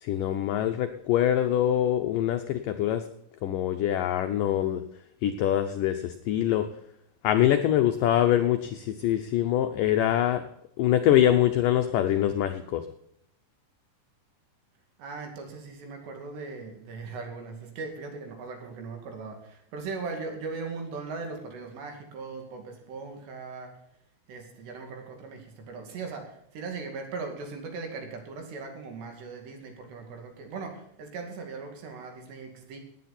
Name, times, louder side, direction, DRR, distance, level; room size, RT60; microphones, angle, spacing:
voice 1, 0.0-3.0 3.4-4.8 5.2-6.7 7.2-10.4 10.8-12.9, left 11 dB, 85° left, 7 dB, 1.9 m, -24 dB
voice 2, 15.0-23.7 24.3-32.8, right 4 dB, 80° right, 3 dB, 4.5 m, -39 dB
18.0 x 9.3 x 4.2 m, 0.74 s
omnidirectional pair, 4.8 m